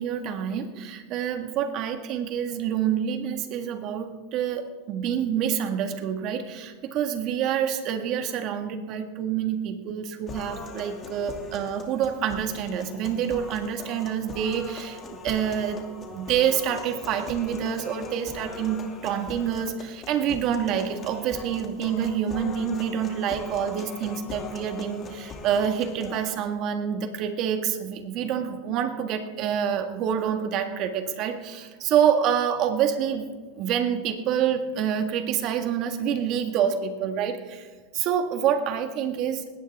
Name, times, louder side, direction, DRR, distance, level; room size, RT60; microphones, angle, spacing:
voice 1, 0.0-33.3 33.6-37.7 37.9-39.4, right 8 dB, 45° right, 6 dB, 1.7 m, -27 dB
sound 1, 10.3-26.3, left 4 dB, 25° left, 2.4 m, -40 dB
20.0 x 17.0 x 3.6 m, 1.4 s
supercardioid pair, 135°, 0 cm